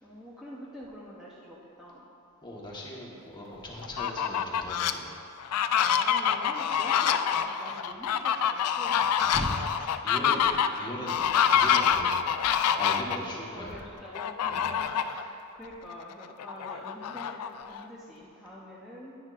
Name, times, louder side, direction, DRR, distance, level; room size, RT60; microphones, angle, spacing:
voice 1, 0.0-2.1 5.9-9.4 10.4-10.7 11.2-11.5 13.5-19.2, equal, ahead, -8 dB, 0.8 m, -46 dB
voice 2, 2.4-5.1 9.2-9.5 9.7-10.5 10.8-11.3 11.6-12.4 12.7-13.8 14.5-14.7, left 1 dB, 20° left, -4 dB, 1.3 m, -38 dB
Fowl, 3.8-4.9 5.4-13.2 14.1-15.2 15.6-15.7 16.1-17.8, left 8 dB, 85° left, 0.4 m, -26 dB
10.5 x 9.9 x 2.5 m, 2.7 s
head